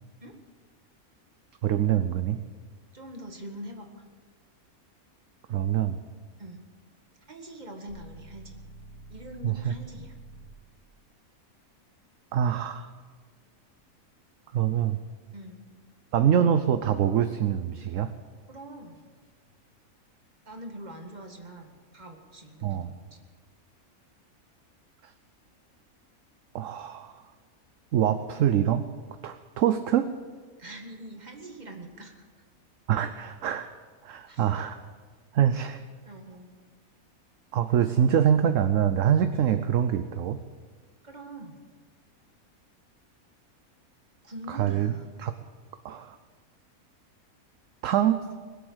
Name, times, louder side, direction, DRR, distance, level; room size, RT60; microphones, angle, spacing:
voice 1, 1.6-2.4 5.5-6.0 9.4-9.7 12.3-12.9 14.5-15.0 16.1-18.1 22.6-22.9 26.5-27.1 27.9-28.9 29.2-30.1 32.9-33.7 34.0-34.8 35.3-35.8 37.5-40.4 44.5-44.9 45.2-45.3 45.8-46.2 47.8-48.2, right 9 dB, 65° right, 9 dB, 1.0 m, -24 dB
voice 2, 2.9-4.0 6.4-6.6 7.3-8.6 9.1-10.1 15.3-15.6 18.5-19.0 20.5-23.2 30.6-32.3 34.3-34.5 36.1-36.5 41.0-41.6 44.2-45.1, right 1 dB, 30° right, 3 dB, 1.9 m, -43 dB
sound 1, 7.9-10.7, right 2 dB, 85° left, 6.4 m, -47 dB
21.5 x 8.2 x 8.1 m, 1.5 s
omnidirectional pair, 1.5 m